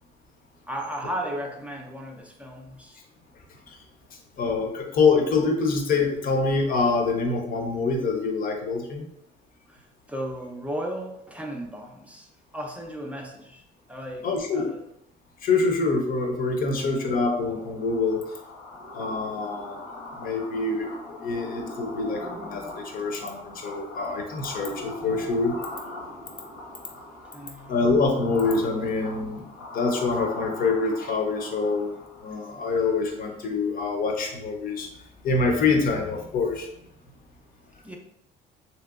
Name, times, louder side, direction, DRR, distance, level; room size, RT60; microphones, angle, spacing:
voice 1, 0.7-3.0 9.7-9.8 10.1-12.3 12.5-13.6 13.9-14.3 14.5-14.8 16.7-17.2 27.3-27.9 37.8-38.0, equal, 10° right, 0 dB, 0.5 m, -35 dB
voice 2, 4.4-9.1 14.2-14.7 15.4-18.2 18.9-19.8 20.2-25.6 27.7-29.4 29.7-34.9 35.2-36.7, left 4 dB, 55° left, 3 dB, 0.7 m, -25 dB
sound 1, 17.0-32.3, left 2 dB, 90° left, 1.0 m, -41 dB
3.1 x 2.9 x 2.4 m, 0.79 s
cardioid pair, 110°, 17 cm